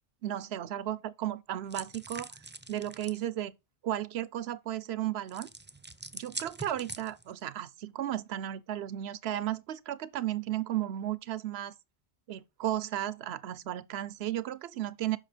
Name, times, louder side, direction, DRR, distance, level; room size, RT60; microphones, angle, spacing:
voice 1, 0.2-2.3 2.7-3.5 3.8-5.5 6.1-11.7 12.3-15.2, right 12 dB, 80° right, 0.9 m, -34 dB
sound 1, 1.7-3.2 5.3-7.4, right 2 dB, 15° right, 0.4 m, -44 dB
7.4 x 5.7 x 5.1 m
omnidirectional pair, 1.1 m